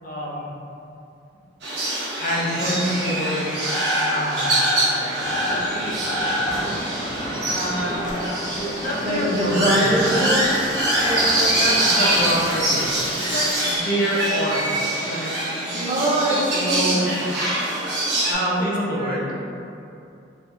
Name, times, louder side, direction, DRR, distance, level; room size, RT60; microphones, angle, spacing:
voice 1, 0.0-0.5 2.2-3.5 4.0-4.6 5.0-6.5 7.4-8.1 8.4-10.3 11.6-15.4 15.6-17.1 18.3-19.3, equal, 50° left, -6 dB, 0.6 m, -27 dB
sound 1, 1.6-18.3, right 1 dB, 65° right, 0.8 m, -24 dB
sound 2, 5.2-13.1, equal, ahead, 1.1 m, -34 dB
Coin (dropping), 7.9-13.8, left 1 dB, 85° left, 0.7 m, -37 dB
voice 2, 9.0-10.6 11.0-11.7 15.9-17.0 18.3-19.2, right 1 dB, 25° right, -5 dB, 0.4 m, -24 dB
3.2 x 2.3 x 2.9 m, 2.6 s
head